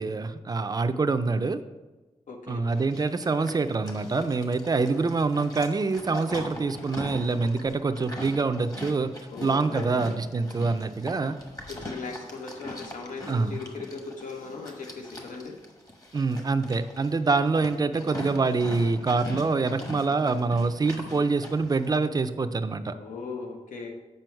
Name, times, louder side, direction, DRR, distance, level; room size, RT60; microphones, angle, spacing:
voice 1, 0.0-1.6 2.5-9.1 9.4-11.4 13.3-13.5 16.1-22.9, right 4 dB, 30° right, 10 dB, 0.4 m, -25 dB
voice 2, 2.3-2.6 9.3-10.1 11.7-15.5 22.9-23.9, left 4 dB, 90° left, 2 dB, 1.0 m, -38 dB
Livestock farm animals working animals, 2.7-22.0, left 1 dB, 30° left, 1.0 m, -41 dB
7.7 x 5.5 x 4.5 m, 1.2 s
wide cardioid pair, 165°, 13 cm